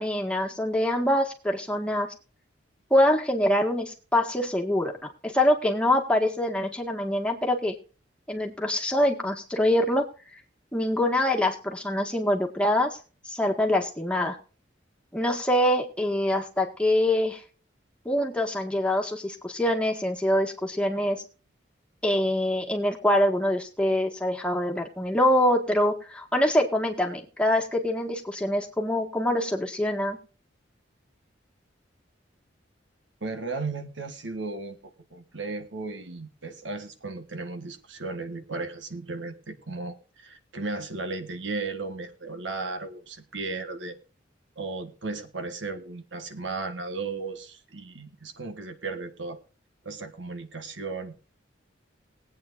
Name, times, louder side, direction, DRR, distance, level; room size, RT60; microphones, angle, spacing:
voice 1, 0.0-2.1 2.9-4.9 5.2-7.8 8.3-10.1 10.7-13.0 13.3-14.4 15.1-17.4 18.1-21.2 22.0-30.2, left 1 dB, 5° left, 1 dB, 1.7 m, -24 dB
voice 2, 33.2-44.0 44.6-49.4 49.8-51.1, right 3 dB, 75° right, 8 dB, 1.5 m, -35 dB
20.5 x 8.8 x 2.6 m, 0.36 s
head